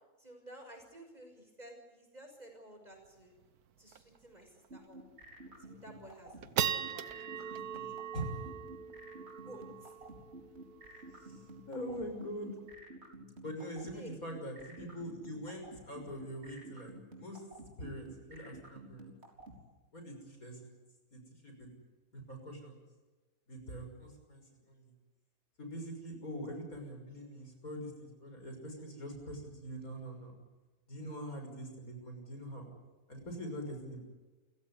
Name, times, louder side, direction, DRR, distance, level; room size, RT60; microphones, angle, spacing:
voice 1, 0.2-3.3 3.8-5.0 5.6-7.1 7.4-8.0 9.4-9.9 13.9-14.1, right 1 dB, 25° right, 4 dB, 6.2 m, -53 dB
sound 1, 3.1-3.2 3.4-3.5 3.9-4.2 4.6-4.7 5.3-5.7 6.1-12.7, right 9 dB, 85° right, 1.5 m, -40 dB
sound 2, 4.7-19.5, right 2 dB, 45° right, 4.5 m, -50 dB
voice 2, 8.1-8.5 11.1-12.6 13.4-17.4 17.8-19.1 19.9-20.8 21.1-21.7 22.1-22.8 23.5-24.9 25.6-30.4 30.9-32.7 33.1-34.0, equal, 70° left, 4 dB, 6.6 m, -43 dB
29.0 x 16.5 x 9.8 m, 1.2 s
omnidirectional pair, 1.5 m